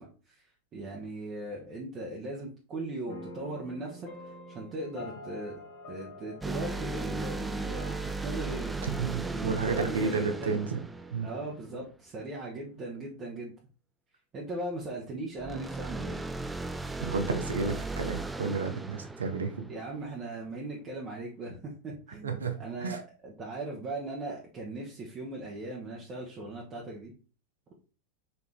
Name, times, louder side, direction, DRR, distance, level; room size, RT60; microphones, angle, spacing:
voice 1, 0.0-5.6 5.9-8.8 9.2-10.6 11.2-13.5 14.3-16.2 19.7-27.1, right 2 dB, 35° right, -3 dB, 1.0 m, -39 dB
sound 1, 3.1-11.6, left 2 dB, 50° left, 1.7 m, -46 dB
sound 2, 6.4-11.9 15.4-20.1, right 3 dB, 10° right, 0.3 m, -37 dB
voice 2, 8.8-10.8 11.1-11.3 17.0-19.7 22.2-23.0, right 4 dB, 90° right, 6 dB, 0.7 m, -31 dB
4.3 x 2.7 x 3.3 m, 0.37 s
hypercardioid pair, 100°, 0 cm